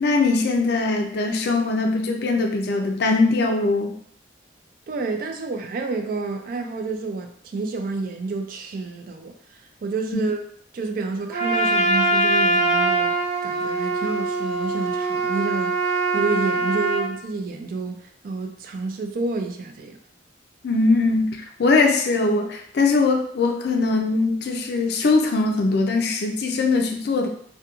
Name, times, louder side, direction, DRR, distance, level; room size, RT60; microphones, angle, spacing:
voice 1, 0.0-3.9 20.6-27.3, left 3 dB, 60° left, 0.4 m, -21 dB
voice 2, 4.9-9.3 9.8-10.4 10.7-13.1 13.4-20.0, right 3 dB, 50° right, 0.3 m, -29 dB
Trumpet, 11.3-17.1, right 2 dB, 20° right, 0.7 m, -22 dB
2.4 x 2.2 x 2.8 m
head